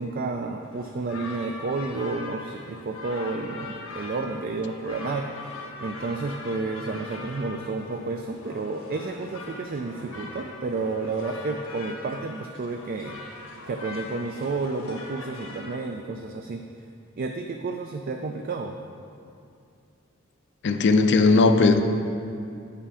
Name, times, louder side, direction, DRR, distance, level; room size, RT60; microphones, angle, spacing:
voice 1, 0.0-13.2 13.7-16.7 17.2-18.8, right 3 dB, 45° right, 5 dB, 0.3 m, -31 dB
sound 1, 0.6-15.8, left 3 dB, 85° left, 1.2 m, -41 dB
voice 2, 20.6-21.8, left 3 dB, 55° left, 7 dB, 0.5 m, -18 dB
8.6 x 5.6 x 4.8 m, 2.5 s
head